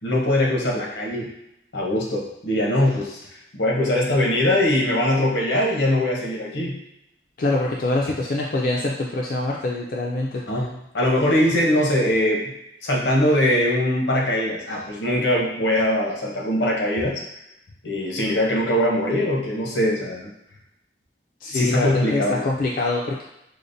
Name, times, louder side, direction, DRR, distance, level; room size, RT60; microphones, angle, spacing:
voice 1, 0.0-1.3 1.7-3.2 3.5-6.8 10.4-12.4 12.8-17.2 17.8-20.3 21.5-22.5, left 1 dB, 85° left, -2 dB, 0.9 m, -22 dB
voice 2, 7.4-10.4 21.4-23.2, left 2 dB, 50° left, -2 dB, 0.3 m, -24 dB
4.9 x 2.1 x 2.6 m, 0.83 s
head